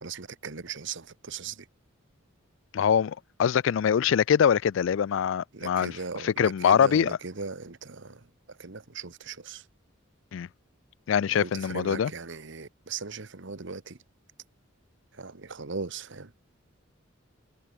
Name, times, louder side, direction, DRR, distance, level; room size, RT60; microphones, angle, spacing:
voice 1, 0.0-1.7 5.5-9.6 11.3-14.0 15.1-16.3, right 4 dB, 60° right, 1.2 m, -38 dB
voice 2, 2.7-6.0 6.2-7.2 10.3-10.5 11.1-12.1, left 8 dB, 65° left, 0.3 m, -23 dB
head